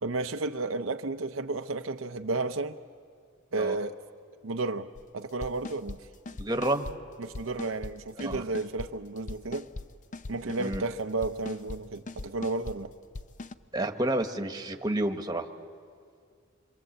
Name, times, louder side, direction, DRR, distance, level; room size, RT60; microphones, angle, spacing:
voice 1, 0.0-2.8 3.5-4.0 4.4-4.9 5.1-6.0 7.2-9.7 10.3-12.9, right 3 dB, 80° right, 0.7 m, -32 dB
sound 1, 5.0-5.1 5.4-6.0 6.3-7.0 7.2-7.9 8.2-8.9 9.2-10.9 11.2-11.8 12.1-12.8 13.1-13.5, left 2 dB, 40° left, 0.6 m, -40 dB
voice 2, 6.4-6.8 8.2-8.4 10.6-10.8 13.7-15.4, right 1 dB, 20° right, 1.3 m, -29 dB
26.5 x 25.0 x 7.9 m
head